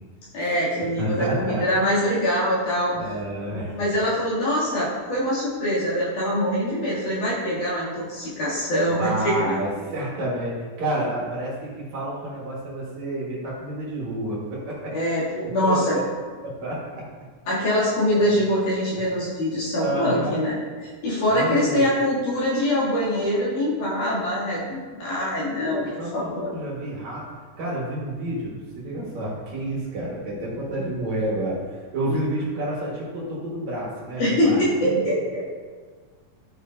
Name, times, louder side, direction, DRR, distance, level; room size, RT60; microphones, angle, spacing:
voice 1, 0.3-2.9 3.7-9.6 14.9-16.0 17.5-20.6 21.0-25.8 26.1-26.5 32.1-32.2 34.2-35.4, equal, 65° left, -9 dB, 4.0 m, -23 dB
voice 2, 1.0-1.7 2.9-3.8 9.0-15.0 15.6-16.1 16.4-17.1 18.1-18.4 19.8-20.4 21.3-21.9 25.5-27.3 27.6-31.6 31.9-34.6, right 1 dB, 60° right, -5 dB, 2.8 m, -29 dB
13.5 x 5.9 x 2.7 m, 1.5 s
omnidirectional pair, 3.9 m